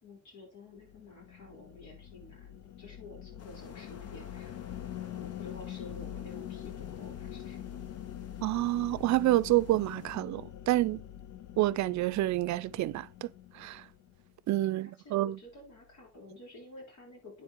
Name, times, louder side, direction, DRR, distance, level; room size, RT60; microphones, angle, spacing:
voice 1, 0.0-4.6 5.0-7.8 14.6-17.4, left 2 dB, 70° left, 5.5 m, -51 dB
sound 1, 0.8-14.3, left 11 dB, 85° left, 0.7 m, -44 dB
sound 2, 3.4-10.1, left 6 dB, 55° left, 1.1 m, -54 dB
voice 2, 8.4-11.0 11.6-13.3 13.5-13.8 14.5-15.4, right 16 dB, 70° right, 0.4 m, -28 dB
9.3 x 4.4 x 4.4 m
cardioid pair, 90°, 30 cm